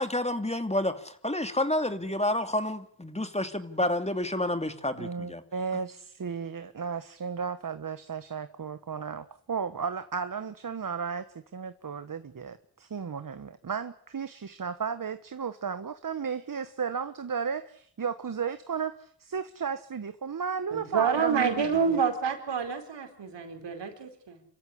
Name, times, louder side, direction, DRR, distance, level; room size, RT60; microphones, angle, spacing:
voice 1, 0.0-5.4, left 1 dB, 15° left, 8 dB, 2.7 m, -29 dB
voice 2, 5.0-11.2 11.5-22.0, right 6 dB, 50° right, 11 dB, 1.4 m, -34 dB
voice 3, 20.7-24.4, right 6 dB, 75° right, 5 dB, 4.7 m, -28 dB
26.5 x 14.5 x 9.9 m, 0.64 s
cardioid pair, 45°, 42 cm